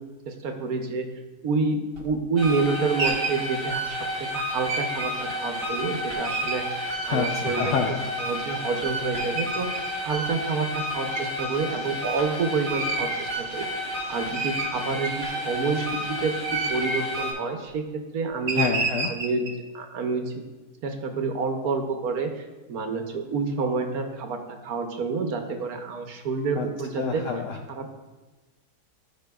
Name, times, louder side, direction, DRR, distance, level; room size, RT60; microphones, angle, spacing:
voice 1, 0.3-1.1 1.4-7.7 8.2-9.7 10.0-13.7 14.1-18.7 19.1-19.4 19.7-20.3 20.8-27.2 27.8-28.0, right 4 dB, 65° right, 5 dB, 1.2 m, -28 dB
sound 1, 1.9-2.1 2.5-3.4 4.7-5.1 6.2-6.6 7.2-7.9 8.6-8.7 9.2-9.9 11.1-11.3 12.7-13.3 13.9-14.0 14.3-15.4 16.3-17.1 18.5-19.5, right 3 dB, 45° right, 0.8 m, -30 dB
sound 2, 2.4-17.3, equal, 20° left, 2.1 m, -31 dB
voice 2, 7.1-8.1 18.5-19.1 26.6-26.7 27.0-27.6, left 6 dB, 70° left, 3 dB, 0.7 m, -27 dB
14.5 x 5.0 x 2.3 m, 1.2 s
omnidirectional pair, 1.8 m